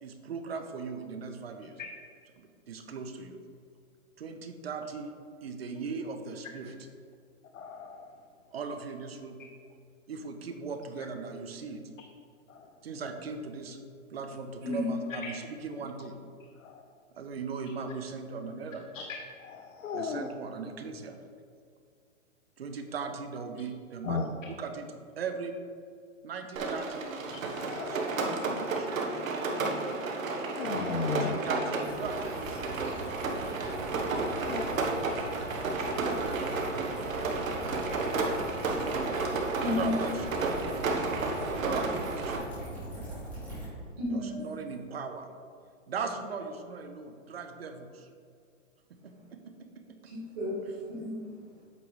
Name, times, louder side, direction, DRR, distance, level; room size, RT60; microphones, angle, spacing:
voice 1, 0.0-1.8 2.4-3.4 4.2-5.1 5.4-6.7 8.5-9.4 10.1-11.8 12.8-13.8 14.1-16.2 17.2-18.8 19.9-21.2 22.6-24.2 24.5-24.9 25.2-25.5 26.2-27.0 27.8-29.0 31.0-32.7 36.0-36.5 37.1-37.4 39.5-41.3 41.5-42.5 44.1-45.3 45.9-48.1 48.9-50.1, right 5 dB, 50° right, 7 dB, 0.7 m, -39 dB
voice 2, 7.5-8.1 12.5-12.7 16.6-16.8 18.9-19.0 19.4-20.3 24.0-24.2 27.5-28.3 30.4-31.4 34.1-34.7, left 5 dB, 75° left, 3 dB, 0.7 m, -36 dB
voice 3, 14.6-15.0 39.0-39.9 44.0-44.5 50.0-50.6 50.9-51.4, left 2 dB, 30° right, -9 dB, 1.5 m, -33 dB
Rain, 26.6-42.4, right 3 dB, 90° right, 1.3 m, -32 dB
sound 1, 31.8-43.6, right 1 dB, 5° left, 0.9 m, -42 dB
8.2 x 3.1 x 5.3 m, 2.2 s
hypercardioid pair, 180°, 39 cm